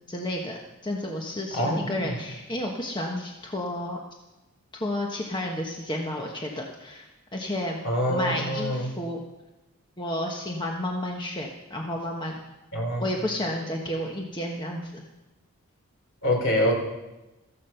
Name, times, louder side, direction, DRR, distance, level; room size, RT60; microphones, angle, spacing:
voice 1, 0.1-4.0 4.7-7.8 8.1-9.2 10.0-12.4 13.0-15.0, left 1 dB, 20° left, 0 dB, 1.3 m, -31 dB
voice 2, 1.5-2.1 7.8-8.9 12.7-13.1 16.2-16.7, equal, 60° left, 1 dB, 3.9 m, -25 dB
14.5 x 14.0 x 5.8 m, 1.0 s
head